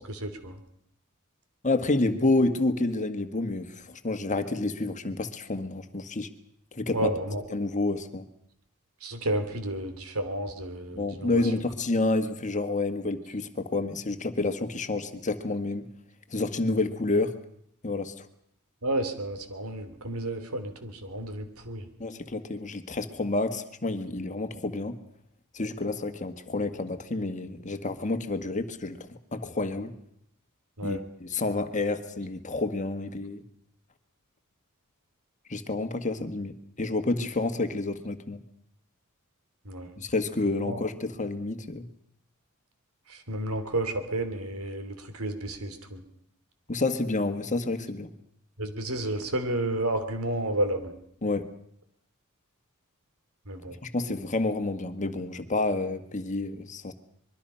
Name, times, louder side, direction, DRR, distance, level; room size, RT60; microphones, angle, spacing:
voice 1, 0.1-0.5 6.9-7.4 9.0-11.4 18.8-21.8 30.8-31.0 39.6-39.9 40.7-40.8 43.1-46.0 48.6-50.9 53.5-53.8, right 1 dB, 80° right, 8 dB, 3.0 m, -31 dB
voice 2, 1.6-6.3 6.7-7.1 7.5-8.3 10.9-15.9 16.3-17.3 17.8-18.3 22.0-25.0 25.5-29.9 30.8-33.4 35.5-38.4 40.0-41.9 46.7-48.1 51.2-51.5 53.8-56.9, left 2 dB, 35° left, 9 dB, 1.6 m, -29 dB
25.0 x 22.5 x 5.7 m, 0.70 s
head